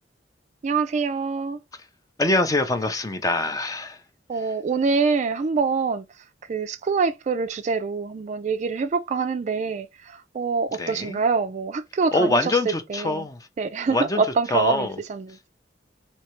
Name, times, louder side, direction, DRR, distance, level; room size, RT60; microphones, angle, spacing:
voice 1, 0.6-1.6 4.3-6.1 6.5-13.3 13.6-15.5, right 4 dB, 40° right, 0.3 m, -25 dB
voice 2, 2.2-4.0 10.8-11.2 12.1-13.4 13.9-14.2 14.5-15.0, left 2 dB, 20° left, 0.5 m, -24 dB
3.2 x 2.8 x 3.0 m
head